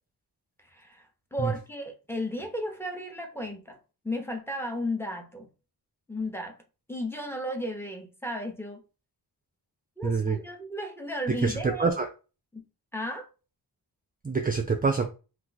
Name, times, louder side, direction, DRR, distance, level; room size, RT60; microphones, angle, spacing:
voice 1, 0.7-1.1 1.3-3.8 4.0-5.5 6.1-6.6 6.9-8.8 10.0-11.9 12.5-12.6 12.9-13.3, left 1 dB, 5° left, 0.8 m, -34 dB
voice 2, 10.0-10.4 11.4-12.1 14.2-15.1, right 4 dB, 20° right, 0.4 m, -26 dB
2.6 x 2.3 x 3.9 m
cardioid pair, 55°, 41 cm